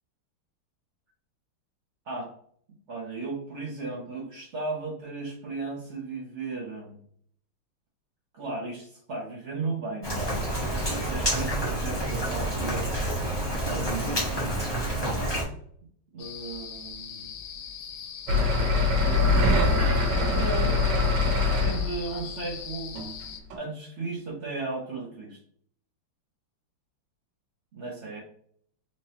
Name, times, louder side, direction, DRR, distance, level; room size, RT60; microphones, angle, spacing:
voice 1, 2.9-7.0 8.3-10.6 11.1-12.9 13.6-14.2 14.8-15.4 16.1-17.4 18.9-19.4 19.9-20.9 21.6-23.0 23.5-25.4 27.7-28.2, right 3 dB, 60° right, -3 dB, 0.7 m, -35 dB
Rain, 10.0-15.4, right 1 dB, 25° left, 0.5 m, -28 dB
sound 1, 16.2-23.4, left 7 dB, 90° left, 0.9 m, -40 dB
sound 2, 18.3-22.2 23.0-23.1 23.5-23.6, left 3 dB, 85° right, 1.8 m, -23 dB
4.3 x 3.0 x 2.7 m, 0.62 s
omnidirectional pair, 2.4 m